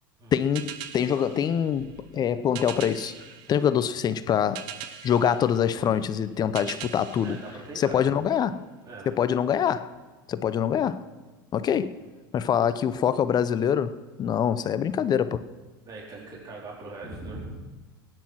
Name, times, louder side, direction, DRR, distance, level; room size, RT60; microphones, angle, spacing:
voice 1, 0.3-3.1 3.5-4.7 5.0-7.4 7.8-8.7 9.1-9.9 10.3-11.1 11.5-12.0 12.3-15.4, left 8 dB, 35° left, 0.7 m, -25 dB
sound 1, 0.5-8.4, right 10 dB, 65° right, 1.1 m, -43 dB
voice 2, 7.2-8.0 8.8-9.1 15.8-17.6, right 2 dB, 35° right, 4.1 m, -40 dB
17.5 x 9.7 x 6.2 m
hypercardioid pair, 85°, 12 cm